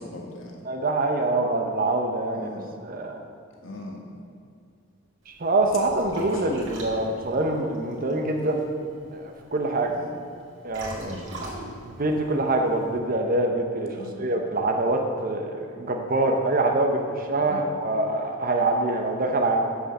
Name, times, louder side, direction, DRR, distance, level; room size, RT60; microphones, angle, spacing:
voice 1, 0.0-0.6 2.3-2.7 3.6-4.1 6.1-6.4 9.8-10.1 11.0-11.3 13.9-14.3 17.4-17.8, left 2 dB, 70° left, -1 dB, 1.5 m, -40 dB
voice 2, 0.6-2.5 2.8-3.1 5.3-8.6 9.1-9.9 10.6-19.7, right 2 dB, 45° right, 3 dB, 0.9 m, -25 dB
Liquid, 5.2-13.0, right 1 dB, 65° right, 2.3 m, -43 dB
8.1 x 7.2 x 6.7 m, 2.4 s
head